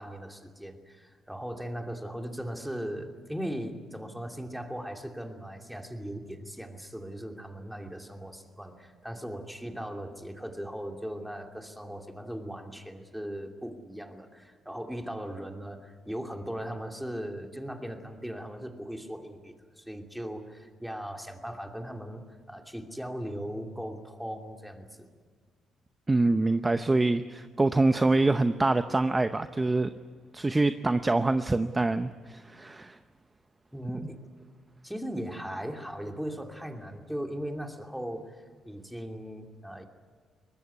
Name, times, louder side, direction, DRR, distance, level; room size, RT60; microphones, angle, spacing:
voice 1, 0.0-25.1 33.7-34.2 34.8-39.9, equal, ahead, 3 dB, 2.8 m, -38 dB
voice 2, 26.1-29.9 30.3-33.0, right 2 dB, 20° right, 10 dB, 0.7 m, -25 dB
23.0 x 20.0 x 9.7 m, 1.5 s
cardioid pair, 90°, 0 cm